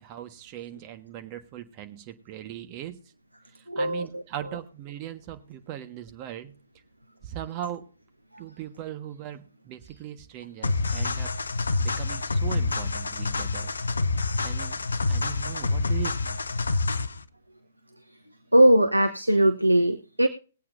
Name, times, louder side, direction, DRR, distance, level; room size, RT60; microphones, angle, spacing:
voice 1, 0.0-3.0 3.5-6.5 7.2-7.9 8.4-11.3 11.8-13.7 14.4-14.8 15.1-16.4, right 11 dB, 30° right, 9 dB, 1.4 m, -39 dB
voice 2, 3.7-4.2 18.5-20.3, right 1 dB, 85° right, 9 dB, 0.9 m, -20 dB
sound 1, 10.6-17.2, left 3 dB, 70° left, 0.6 m, -27 dB
21.0 x 8.5 x 2.6 m, 0.38 s
figure-of-eight pair, 120°, 0 cm